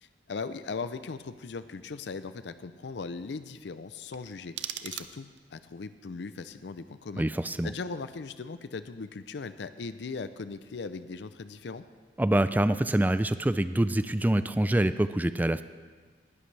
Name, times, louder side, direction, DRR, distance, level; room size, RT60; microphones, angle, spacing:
voice 1, 0.0-7.2 7.6-11.8, left 4 dB, 75° left, 12 dB, 0.5 m, -39 dB
sound 1, 4.1-5.6, right 11 dB, 85° right, 0.6 m, -40 dB
voice 2, 7.2-7.7 12.2-15.6, right 1 dB, 10° right, 12 dB, 0.3 m, -25 dB
19.5 x 11.5 x 3.3 m, 1.4 s
head